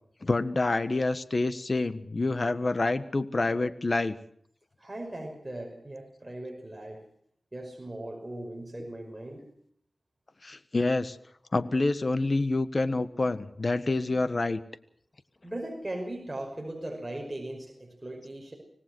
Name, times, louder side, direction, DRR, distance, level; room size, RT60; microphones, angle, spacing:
voice 1, 0.2-4.2 10.4-11.2 11.5-14.6, left 2 dB, 45° left, 13 dB, 1.4 m, -27 dB
voice 2, 4.8-7.0 7.5-9.4 15.4-18.5, right 1 dB, 20° right, 2 dB, 5.7 m, -38 dB
25.5 x 18.5 x 6.3 m, 0.66 s
cardioid pair, 55°, 0 cm